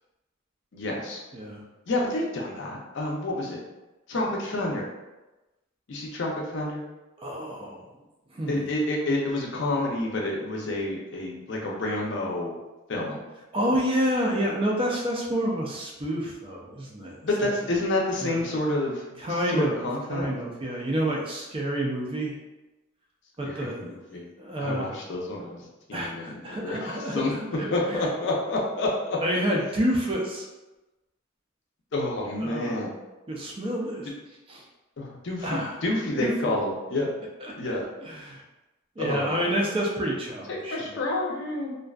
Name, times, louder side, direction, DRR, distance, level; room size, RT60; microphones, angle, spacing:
voice 1, 0.7-1.2 1.9-3.6 4.1-4.9 5.9-6.8 8.5-12.5 12.9-13.2 17.2-20.3 23.4-24.3 24.6-27.3 27.7-29.2 31.9-32.9 35.0-37.1 37.6-37.9 39.0-39.4 40.5-41.7, left 2 dB, 60° left, -2 dB, 0.5 m, -29 dB
voice 2, 7.2-7.8 8.3-8.6 13.5-17.5 18.2-18.4 19.2-22.4 23.4-23.8 24.4-24.9 25.9-28.0 29.2-30.5 32.4-32.8 33.3-34.1 34.5-34.6 35.4-35.7 36.2-36.6 37.4-37.7 38.0-38.4 39.0-41.0, equal, 25° right, -2 dB, 0.4 m, -29 dB
2.5 x 2.2 x 2.3 m, 1.1 s
head